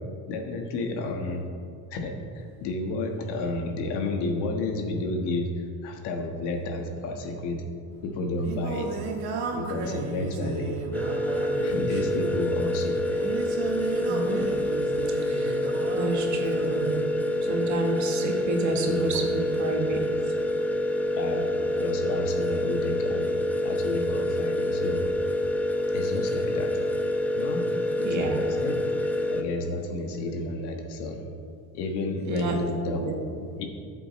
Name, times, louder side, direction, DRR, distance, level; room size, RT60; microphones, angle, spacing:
voice 1, 0.3-1.4 1.9-7.6 8.0-9.0 9.5-10.8 11.6-13.1 18.9-19.3 21.1-21.5 21.8-23.3 23.6-25.0 25.9-26.7 27.4-27.6 28.0-28.8 29.3-31.2 31.7-33.0 33.3-33.7, left 2 dB, 80° left, 2 dB, 1.6 m, -31 dB
Singing, 7.9-17.0, right 4 dB, 75° right, 1.6 m, -34 dB
sound 1, 10.9-29.4, left 1 dB, 5° left, 0.6 m, -27 dB
voice 2, 14.0-14.5 15.3-15.6 15.9-17.0 17.5-20.0 28.0-28.3 32.3-32.6 32.8-33.2, right 3 dB, 45° right, 2 dB, 1.5 m, -30 dB
13.0 x 7.7 x 3.2 m, 2.4 s
cardioid pair, 130°, 40 cm